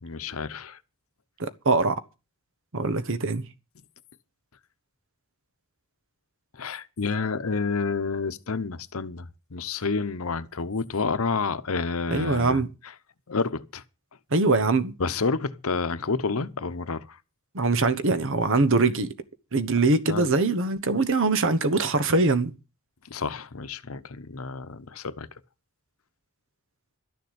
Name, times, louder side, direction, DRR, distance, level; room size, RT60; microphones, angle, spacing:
voice 1, 0.0-0.8 6.5-12.6 13.3-13.8 15.0-17.2 20.1-20.4 23.1-25.3, left 4 dB, 70° left, 0.9 m, -29 dB
voice 2, 1.4-1.9 2.7-3.5 12.1-12.7 14.3-14.9 17.5-19.1 19.5-22.5, right 3 dB, 65° right, 1.2 m, -23 dB
12.5 x 6.9 x 8.2 m
head